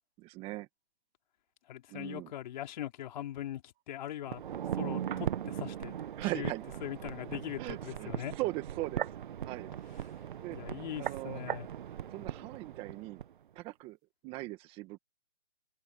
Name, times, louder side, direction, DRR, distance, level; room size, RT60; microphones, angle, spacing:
voice 1, 0.2-0.7 1.9-2.3 6.2-6.6 7.6-9.0 9.4-9.7 10.4-10.6 11.0-11.4 12.1-13.2 13.5-14.0 14.2-15.0, right 19 dB, 15° right, 1.5 m, -39 dB
voice 2, 1.7-4.4 4.7-6.0 6.2-6.5 6.8-8.3 10.5-11.7, left 12 dB, 35° left, 3.9 m, -41 dB
sound 1, 4.2-13.3 13.6-13.7, right 9 dB, 45° right, 1.4 m, -39 dB
hypercardioid pair, 155°, 37 cm